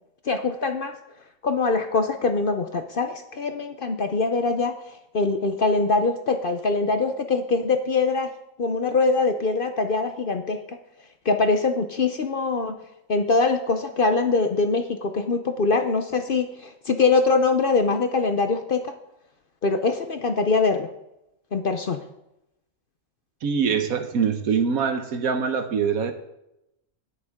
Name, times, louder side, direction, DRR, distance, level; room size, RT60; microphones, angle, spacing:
voice 1, 0.3-1.0 1.4-4.7 5.1-8.3 8.6-10.8 11.2-12.8 13.1-18.9 19.6-20.9 21.5-22.0, left 3 dB, 50° left, 7 dB, 0.8 m, -23 dB
voice 2, 23.4-26.1, right 6 dB, 80° right, 8 dB, 1.4 m, -24 dB
18.0 x 6.7 x 3.6 m, 0.86 s
omnidirectional pair, 1.5 m